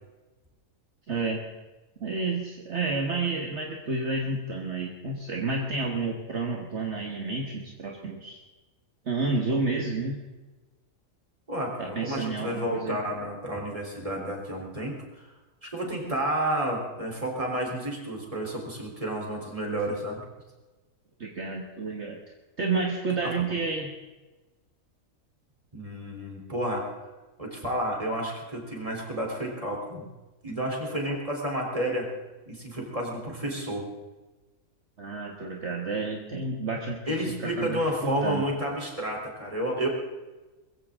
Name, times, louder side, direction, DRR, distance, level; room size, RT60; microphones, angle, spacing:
voice 1, 1.1-1.4 2.0-8.4 9.0-10.2 11.8-13.0 21.2-22.2 22.6-23.9 31.1-31.2 35.0-38.4, right 3 dB, 55° right, 0 dB, 1.8 m, -30 dB
voice 2, 11.5-15.0 15.6-20.2 23.2-23.5 25.7-26.9 27.4-30.1 30.4-32.1 32.5-33.9 37.1-39.9, right 1 dB, 25° right, 0 dB, 3.6 m, -31 dB
21.5 x 15.5 x 3.7 m, 1.2 s
omnidirectional pair, 1.4 m